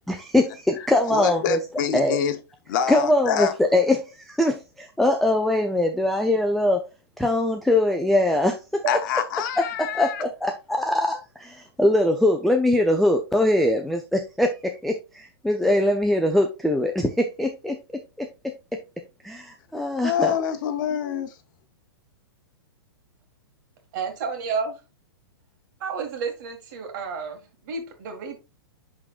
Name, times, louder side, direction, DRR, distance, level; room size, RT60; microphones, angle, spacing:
voice 1, 0.1-1.6 1.9-2.2 2.9-6.8 7.2-8.5 9.6-17.8 18.2-18.8 19.2-20.3, left 1 dB, ahead, 0.4 m, -22 dB
voice 2, 1.1-2.4 2.7-3.5 8.9-10.2 20.0-21.3, left 9 dB, 50° left, 0.9 m, -26 dB
voice 3, 23.9-24.8 25.8-28.4, right 5 dB, 50° right, 1.8 m, -31 dB
10.5 x 3.8 x 2.4 m
hypercardioid pair, 140°, 13 cm